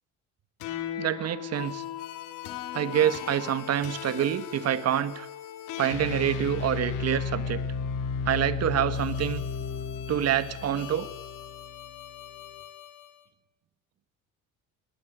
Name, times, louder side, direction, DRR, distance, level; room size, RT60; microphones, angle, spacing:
sound 1, 0.6-13.1, left 6 dB, 85° left, 3.0 m, -35 dB
voice 1, 1.0-1.8 2.7-5.3 5.8-7.6 8.2-9.5 10.1-11.1, right 10 dB, 55° right, 13 dB, 1.5 m, -27 dB
19.5 x 19.5 x 9.4 m, 0.91 s
cardioid pair, 100°, 30 cm